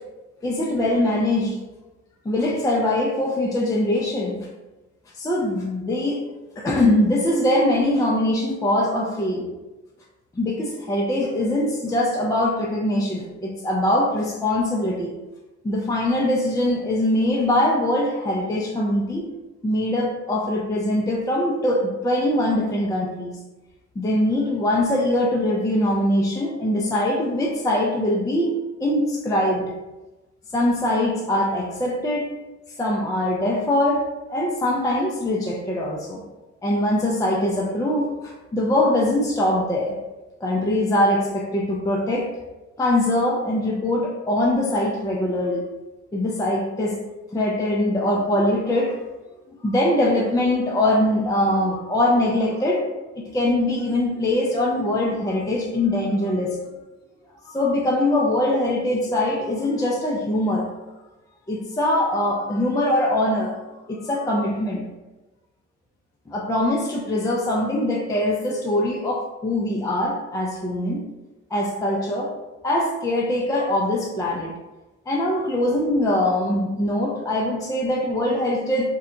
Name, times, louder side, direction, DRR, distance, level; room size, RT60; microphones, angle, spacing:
voice 1, 0.4-1.6 2.2-4.4 5.2-6.2 6.6-9.5 10.4-15.1 15.6-19.3 19.6-23.4 24.0-28.5 28.8-29.6 30.5-32.3 32.8-36.2 36.6-40.0 40.4-42.3 42.8-45.6 46.1-47.0 47.3-49.0 49.6-56.6 57.4-60.7 61.5-63.6 63.9-64.8 66.3-71.0 71.5-72.3 72.6-74.5 75.1-78.9, left 1 dB, 10° left, -3 dB, 0.4 m, -22 dB
2.7 x 2.2 x 3.7 m, 1.1 s
cardioid pair, 90°, 30 cm